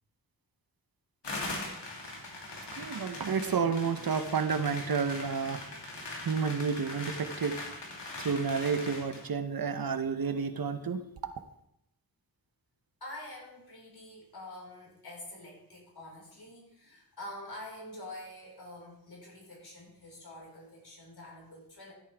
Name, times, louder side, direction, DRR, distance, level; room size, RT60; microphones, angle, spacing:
sound 1, 1.2-9.2, left 2 dB, 90° left, 2.4 m, -41 dB
voice 1, 2.7-7.8 8.2-11.0, right 5 dB, 60° right, 0.9 m, -31 dB
voice 2, 13.0-21.9, left 1 dB, 70° left, 5.0 m, -46 dB
14.0 x 8.4 x 3.5 m
wide cardioid pair, 65°, 41 cm